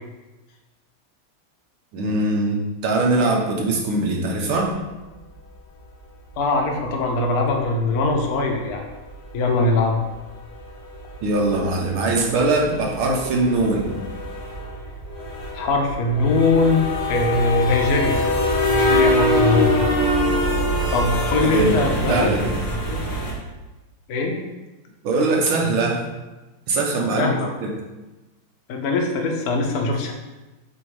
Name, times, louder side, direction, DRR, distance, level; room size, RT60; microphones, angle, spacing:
voice 1, 1.9-4.8 11.2-14.0 21.5-21.8 22.1-22.5 25.0-26.1 26.7-27.3 27.6-27.7, right 2 dB, 80° right, -1 dB, 1.9 m, -21 dB
voice 2, 6.4-8.8 9.3-10.0 15.5-18.2 18.7-19.8 20.9-22.3 22.9-23.0 24.1-24.4 27.2-27.5 28.7-30.1, left 3 dB, 55° left, 2 dB, 1.1 m, -21 dB
sound 1, 8.7-8.8 9.2-9.3 9.6-9.8 10.1-10.2 10.5-23.3, left 1 dB, 85° left, 2.4 m, -24 dB
7.5 x 2.7 x 4.8 m, 1.1 s
omnidirectional pair, 2.3 m